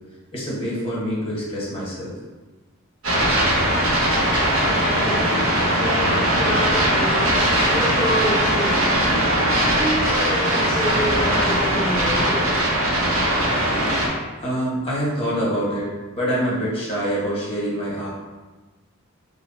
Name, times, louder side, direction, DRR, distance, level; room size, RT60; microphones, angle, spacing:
voice 1, 0.3-2.1 14.4-18.1, equal, 30° left, -5 dB, 1.0 m, -25 dB
sound 1, 3.0-14.1, right 1 dB, 70° right, 0.8 m, -20 dB
voice 2, 4.3-5.4 5.7-7.2 7.7-9.1 9.6-12.4, equal, 5° left, -10 dB, 0.7 m, -28 dB
3.2 x 2.0 x 4.0 m, 1.2 s
head